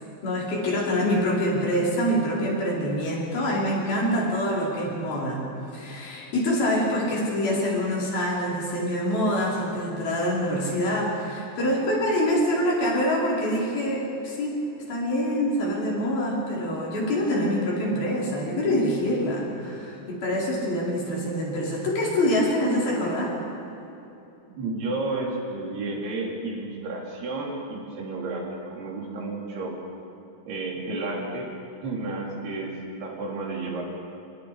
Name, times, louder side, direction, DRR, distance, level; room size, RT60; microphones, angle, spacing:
voice 1, 0.2-5.4 5.7-14.6 14.9-23.3, equal, 70° left, -4 dB, 6.5 m, -25 dB
voice 2, 24.5-29.8 30.5-31.5 31.8-33.8, right 2 dB, 90° right, -2 dB, 5.5 m, -32 dB
26.5 x 26.0 x 5.0 m, 2.8 s
omnidirectional pair, 4.5 m